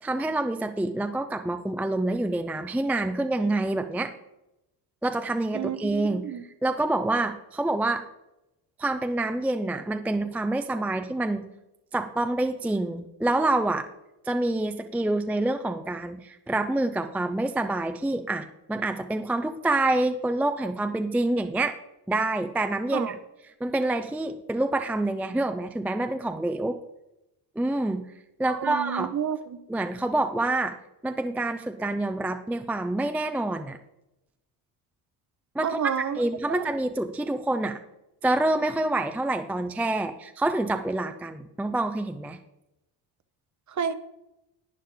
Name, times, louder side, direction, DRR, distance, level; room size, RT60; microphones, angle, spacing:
voice 1, 0.0-4.1 5.0-6.3 6.6-8.0 8.8-11.5 11.9-13.9 14.2-21.8 22.1-23.1 23.6-26.8 27.6-28.1 28.4-29.1 29.7-30.8 31.0-33.8 35.5-37.8 38.2-42.4, right 2 dB, 5° right, 7 dB, 0.4 m, -27 dB
voice 2, 5.5-6.4 22.9-23.1 28.5-29.6 35.6-36.2 36.5-36.6 43.7-43.9, right 8 dB, 35° right, 12 dB, 0.8 m, -30 dB
11.0 x 8.7 x 3.8 m, 0.91 s
cardioid pair, 105°, 49 cm